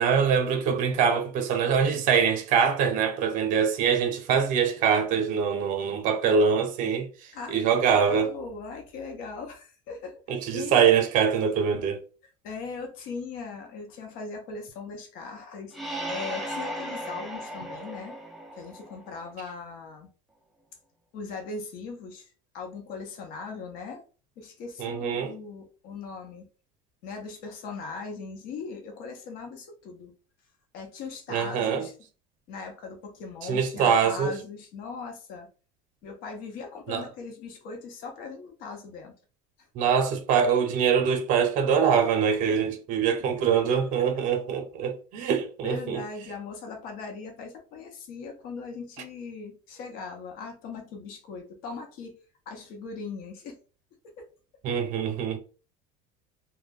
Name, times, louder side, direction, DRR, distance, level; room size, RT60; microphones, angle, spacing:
voice 1, 0.0-8.3 10.3-12.0 24.8-25.3 31.3-31.9 33.4-34.3 36.9-37.0 39.7-46.0 54.6-55.4, right 7 dB, 50° right, 0.6 m, -24 dB
voice 2, 7.3-10.8 12.4-15.8 16.1-18.2 18.5-20.1 21.1-24.0 24.4-26.5 27.0-30.1 30.7-31.9 32.5-35.5 36.0-39.1 44.1-44.2 45.2-45.3 45.6-52.2 52.5-53.6 54.2-54.3, left 4 dB, 60° left, 0.8 m, -39 dB
sound 1, 15.7-19.3, right 1 dB, ahead, 0.4 m, -36 dB
2.1 x 2.1 x 3.3 m
cardioid pair, 145°, 17 cm